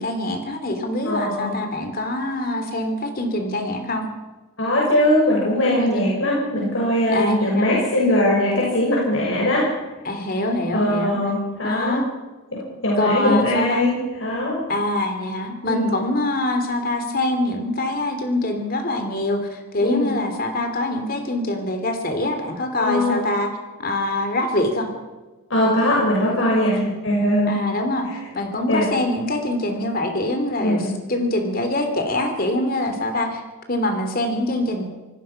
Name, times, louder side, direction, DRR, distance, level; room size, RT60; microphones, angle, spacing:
voice 1, 0.0-4.1 5.8-6.1 7.1-7.7 10.0-11.2 11.6-12.0 13.0-13.9 14.7-23.5 23.8-24.9 26.8-26.9 27.5-33.4 33.7-34.8, left 1 dB, 45° left, 6 dB, 3.2 m, -24 dB
voice 2, 1.0-1.6 4.6-9.7 10.7-12.0 12.5-14.6 15.6-16.0 19.8-20.2 22.8-23.2 25.5-26.8 27.0-27.6 28.7-28.9 30.6-30.9, left 1 dB, 65° left, -3 dB, 6.4 m, -21 dB
27.0 x 19.0 x 6.0 m, 1.2 s
head